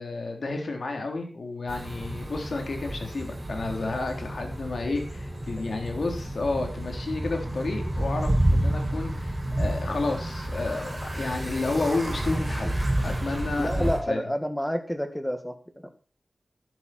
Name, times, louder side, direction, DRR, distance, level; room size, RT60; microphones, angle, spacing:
voice 1, 0.0-12.8 13.0-14.2, left 3 dB, 70° left, 3 dB, 3.5 m, -31 dB
sound 1, 1.7-14.0, right 1 dB, 25° right, 5.7 m, -30 dB
voice 2, 13.5-15.9, equal, 5° left, 7 dB, 1.9 m, -29 dB
12.0 x 11.5 x 4.4 m, 0.37 s
wide cardioid pair, 95°, 0 cm